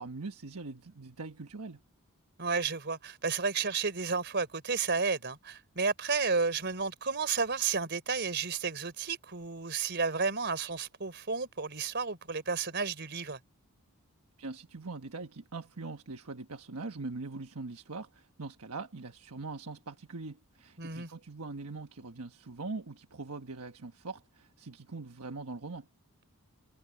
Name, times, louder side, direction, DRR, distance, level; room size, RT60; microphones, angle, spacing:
voice 1, 0.0-1.8 14.4-25.9, right 3 dB, 80° right, 1.2 m, -42 dB
voice 2, 2.4-13.4 20.8-21.1, right 4 dB, 50° right, 3.8 m, -32 dB
head